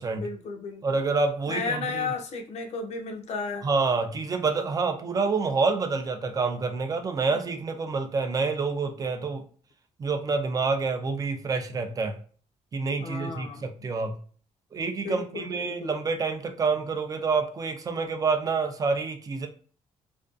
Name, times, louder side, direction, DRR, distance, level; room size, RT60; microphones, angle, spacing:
voice 1, 0.1-1.0 1.5-3.7 7.3-7.4 13.0-13.9 15.0-15.9, left 4 dB, 60° left, 4 dB, 0.5 m, -34 dB
voice 2, 0.8-2.1 3.6-9.4 10.0-12.2 12.7-14.2 14.7-19.5, right 4 dB, 30° right, 6 dB, 0.3 m, -27 dB
2.5 x 2.2 x 2.4 m, 0.42 s
cardioid pair, 145°, 13 cm